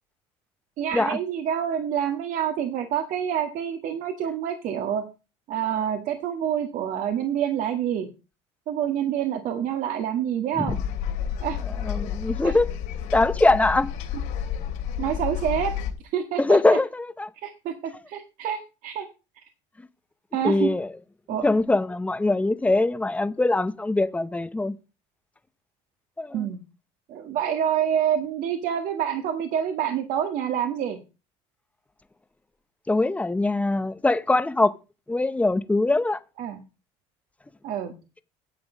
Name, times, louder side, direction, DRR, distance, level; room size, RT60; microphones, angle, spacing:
voice 1, 0.8-5.0 5.5-8.1 8.7-10.8 11.4-11.6 12.4-12.5 15.0-15.7 16.1-16.8 17.4-19.0 20.3-20.7 21.3-21.4 26.3-26.6 27.1-31.0 36.4-36.6 37.6-37.9, right 9 dB, 60° right, 1.7 m, -27 dB
sound 1, 10.7-15.9, left 8 dB, 75° left, 2.9 m, -30 dB
voice 2, 11.8-12.8 13.1-13.9 16.4-17.3 20.4-20.9 21.4-24.8 26.2-26.5 32.9-34.7 35.1-36.2, left 2 dB, 10° left, 0.8 m, -22 dB
11.0 x 7.8 x 5.0 m
supercardioid pair, 110°, 15 cm